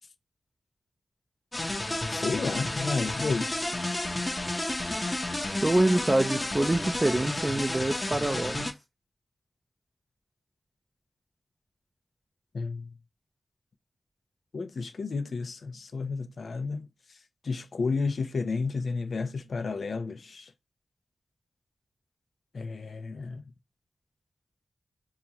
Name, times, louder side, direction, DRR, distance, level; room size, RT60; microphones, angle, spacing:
sound 1, 1.5-8.7, left 1 dB, 20° left, 1.0 m, -31 dB
voice 1, 2.1-3.6 12.5-12.9 14.5-16.9 17.4-20.5 22.5-23.4, left 4 dB, 70° left, 0.6 m, -31 dB
voice 2, 5.6-8.7, right 1 dB, 20° right, 0.5 m, -25 dB
6.7 x 2.4 x 2.9 m
wide cardioid pair, 100°, 0 cm